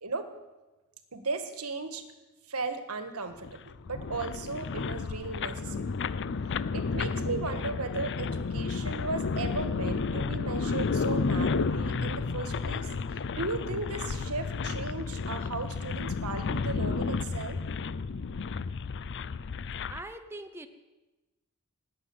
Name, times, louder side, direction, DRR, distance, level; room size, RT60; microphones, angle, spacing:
voice 1, 1.1-2.0 2.5-5.9 6.7-17.6, right 3 dB, 75° right, 7 dB, 1.6 m, -36 dB
sound 1, 3.4-20.0, left 4 dB, 55° left, 0.5 m, -32 dB
voice 2, 19.9-20.7, right 1 dB, 10° right, 7 dB, 0.8 m, -41 dB
17.5 x 7.8 x 9.7 m, 1.1 s
head